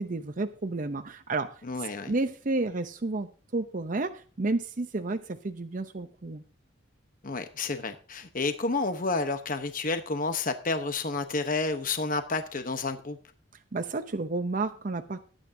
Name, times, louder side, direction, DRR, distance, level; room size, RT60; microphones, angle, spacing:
voice 1, 0.0-6.4 13.7-15.2, right 3 dB, 40° right, 8 dB, 0.6 m, -31 dB
voice 2, 1.6-2.1 7.2-13.2, left 3 dB, 45° left, 9 dB, 1.0 m, -30 dB
18.0 x 9.0 x 2.7 m, 0.37 s
head